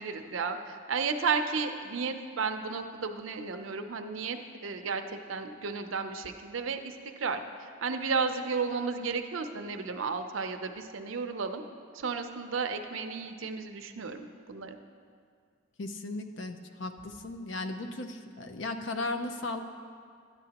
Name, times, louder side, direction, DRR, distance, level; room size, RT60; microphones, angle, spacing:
voice 1, 0.0-11.6 11.9-14.8, right 5 dB, 75° right, 7 dB, 0.6 m, -33 dB
voice 2, 15.8-19.6, left 2 dB, 60° left, 7 dB, 0.6 m, -36 dB
12.5 x 9.6 x 2.9 m, 2.1 s
head